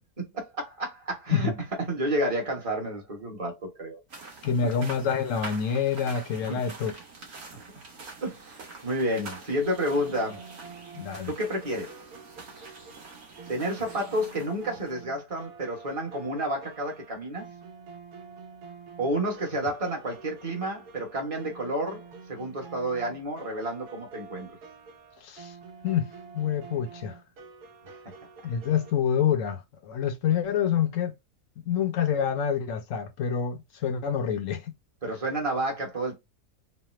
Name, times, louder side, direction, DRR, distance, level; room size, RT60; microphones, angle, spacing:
voice 1, 0.2-1.5 1.9-4.0 6.4-6.6 8.2-10.5 11.3-12.0 13.5-17.5 19.0-24.5 27.8-28.0 35.0-36.2, right 1 dB, 25° right, 0.9 m, -30 dB
sound 1, 4.1-15.0, right 3 dB, 50° right, 1.0 m, -45 dB
voice 2, 4.4-6.9 10.9-11.3 25.2-25.5 25.8-27.2 28.4-31.2 31.7-34.7, left 8 dB, 65° left, 0.9 m, -27 dB
sound 2, 9.6-28.9, right 5 dB, 75° right, 1.2 m, -47 dB
3.2 x 2.0 x 3.0 m
omnidirectional pair, 1.7 m